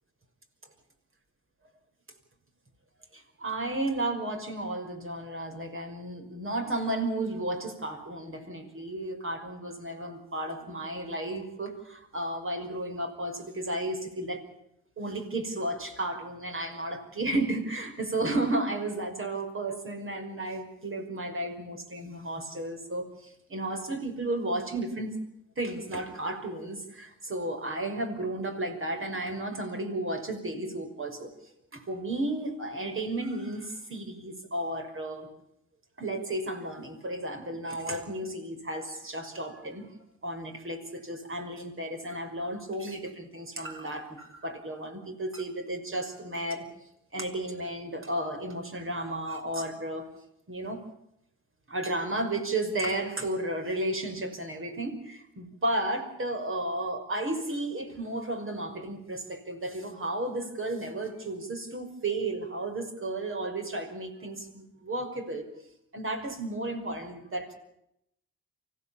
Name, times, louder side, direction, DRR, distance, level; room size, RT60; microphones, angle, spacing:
voice 1, 3.1-14.4 15.0-25.2 25.6-31.3 31.7-35.3 36.0-39.9 40.2-46.7 47.1-50.1 50.5-50.8 51.7-65.5 65.9-67.6, right 1 dB, 40° right, 5 dB, 5.9 m, -33 dB
25.0 x 16.5 x 8.8 m, 0.78 s
supercardioid pair, 50°, 31 cm